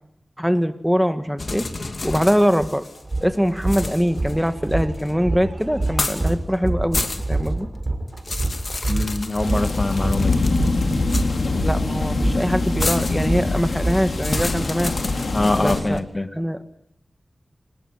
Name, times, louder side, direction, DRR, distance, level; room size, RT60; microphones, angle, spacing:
voice 1, 0.4-1.7 2.0-2.9 3.2-7.7 11.5-14.9 15.6-16.0 16.3-16.7, equal, ahead, 9 dB, 1.8 m, -22 dB
sound 1, 1.4-3.2 3.6-5.1 5.8-6.3 6.7-7.5 7.8-11.6 12.8-16.0, left 3 dB, 60° left, 2.5 m, -30 dB
sound 2, 2.6-2.7 3.0-14.4, right 2 dB, 35° right, 5.0 m, -27 dB
voice 2, 8.9-10.4 15.3-16.3, left 2 dB, 40° left, 9 dB, 1.7 m, -23 dB
sound 3, 9.4-15.8, left 3 dB, 90° left, 4.3 m, -24 dB
25.0 x 20.0 x 9.9 m, 0.74 s
wide cardioid pair, 65°, 0 cm